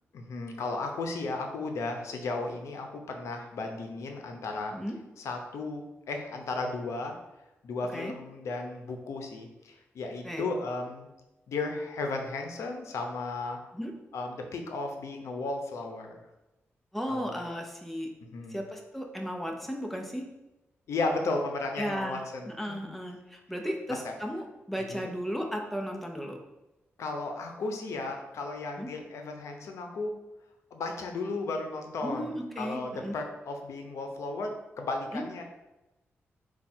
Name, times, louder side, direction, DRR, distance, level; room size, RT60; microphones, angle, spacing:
voice 1, 0.1-4.7 5.2-7.1 7.6-11.1 11.5-13.6 14.1-16.2 17.1-17.4 18.3-18.6 20.9-22.5 22.8-22.9 24.0-24.1 24.9-25.1 27.0-30.1 30.7-35.4, left 3 dB, 90° left, 4 dB, 0.6 m, -34 dB
voice 2, 16.9-18.1 18.5-20.2 21.8-22.2 22.6-26.4 28.8-28.9 32.0-33.2 35.1-35.2, equal, 5° left, 2 dB, 0.6 m, -35 dB
4.6 x 2.3 x 4.3 m, 0.99 s
cardioid pair, 95°, 5 cm